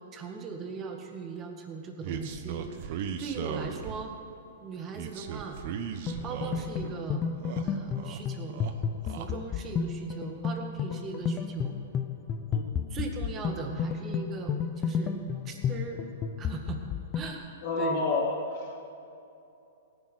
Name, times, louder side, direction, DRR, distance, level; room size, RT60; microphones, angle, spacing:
voice 1, 0.0-4.1 4.6-5.6 6.2-7.2 7.6-8.6 9.0-11.7 12.9-15.2 15.5-16.0 16.4-16.8 17.1-18.1, right 4 dB, 25° right, 3 dB, 1.9 m, -39 dB
sound 1, 2.0-4.2 4.9-6.9 7.3-8.2 8.5-9.3, right 7 dB, 50° right, 1.1 m, -37 dB
sound 2, 6.1-17.3, left 6 dB, 25° left, 0.8 m, -32 dB
voice 2, 17.6-18.7, left 3 dB, 50° left, -2 dB, 3.5 m, -29 dB
17.5 x 10.0 x 6.5 m, 2.7 s
hypercardioid pair, 135°, 0 cm